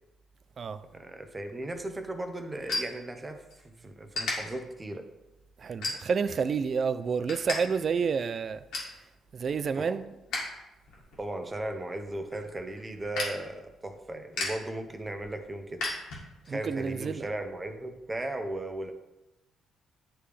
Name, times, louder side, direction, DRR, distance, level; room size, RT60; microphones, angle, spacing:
voice 1, 0.9-5.0 9.8-10.0 11.2-15.8 16.4-18.9, right 1 dB, 20° right, 0.8 m, -37 dB
sound 1, 1.5-3.6 4.1-4.3 4.9-5.1 5.8-6.4 6.8-7.6 7.9-8.0 8.3-9.0 9.4-10.5 10.8-16.6, left 2 dB, 85° left, 2.0 m, -36 dB
voice 2, 5.6-8.6 9.3-10.1 16.5-17.3, right 6 dB, 50° right, 0.4 m, -29 dB
9.6 x 3.3 x 3.4 m
cardioid pair, 90°, 0 cm